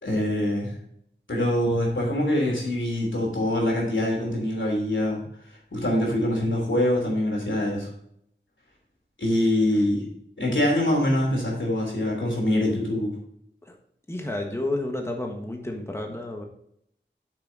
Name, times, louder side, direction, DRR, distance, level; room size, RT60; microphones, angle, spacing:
voice 1, 0.0-0.7 1.3-5.2 5.7-7.9 9.2-10.1 10.4-13.2, left 1 dB, 80° left, -1 dB, 3.1 m, -24 dB
voice 2, 14.1-16.4, left 1 dB, 15° left, 2 dB, 1.3 m, -31 dB
8.1 x 6.1 x 3.9 m, 0.69 s
wide cardioid pair, 45°, 19 cm